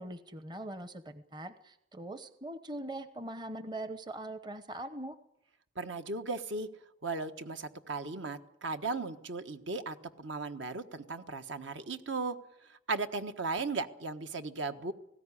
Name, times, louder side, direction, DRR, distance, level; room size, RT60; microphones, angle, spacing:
voice 1, 0.0-5.1, right 1 dB, 25° right, 11 dB, 0.9 m, -42 dB
voice 2, 5.8-6.7 7.0-12.4 12.7-14.9, right 3 dB, 70° right, 8 dB, 1.4 m, -36 dB
19.0 x 16.5 x 9.9 m, 0.83 s
head